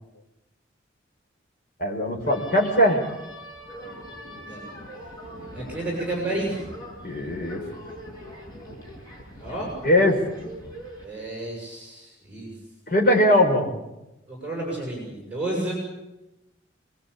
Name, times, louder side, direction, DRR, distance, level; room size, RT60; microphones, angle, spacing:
voice 1, 1.8-3.0 7.0-7.6 9.8-10.2 12.9-13.7, left 1 dB, 45° left, 1 dB, 5.1 m, -20 dB
sound 1, 2.2-11.0, equal, 20° left, 7.4 m, -41 dB
voice 2, 5.5-6.6 9.4-9.7 11.0-12.5 14.3-15.7, right 1 dB, 5° right, -2 dB, 7.6 m, -31 dB
28.0 x 21.5 x 8.6 m, 0.96 s
head